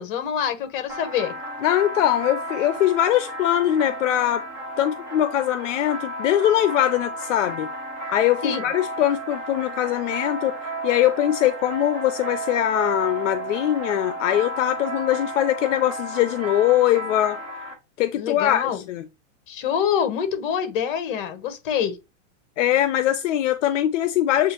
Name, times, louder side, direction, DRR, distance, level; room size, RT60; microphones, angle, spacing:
voice 1, 0.0-1.3 8.4-8.6 18.1-18.8 19.5-22.0, left 8 dB, 45° left, 0.9 m, -26 dB
sound 1, 0.9-17.7, right 2 dB, 10° right, 0.4 m, -33 dB
voice 2, 1.6-4.4 4.8-7.7 8.1-10.5 10.8-17.4 18.0-19.1 22.6-24.5, left 12 dB, 70° left, 0.6 m, -22 dB
7.3 x 2.5 x 2.9 m
supercardioid pair, 180°, 38 cm